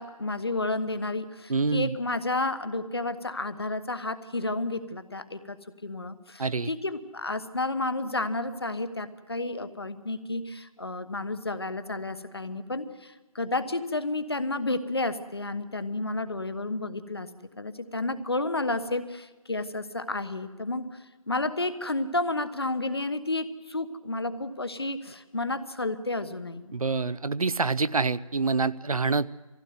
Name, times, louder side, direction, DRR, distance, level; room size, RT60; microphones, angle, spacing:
voice 1, 0.0-5.6 5.8-17.3 17.6-26.7, left 2 dB, 45° left, 11 dB, 1.2 m, -31 dB
voice 2, 1.5-1.9 6.4-6.7 26.7-29.3, right 4 dB, 80° right, 16 dB, 0.7 m, -26 dB
20.5 x 16.0 x 9.4 m, 1.2 s
figure-of-eight pair, 175°, 18 cm